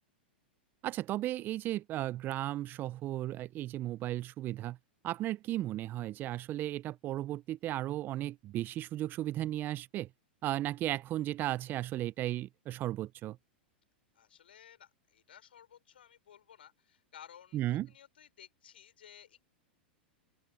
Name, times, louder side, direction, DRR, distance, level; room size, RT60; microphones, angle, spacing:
voice 1, 0.8-4.8 5.0-10.1 10.4-13.4 17.5-17.9, right 14 dB, 35° right, 0.9 m, -35 dB
voice 2, 14.1-17.6 17.9-19.4, left 9 dB, 75° left, 6.1 m, -56 dB
open air
hypercardioid pair, 100°, 6 cm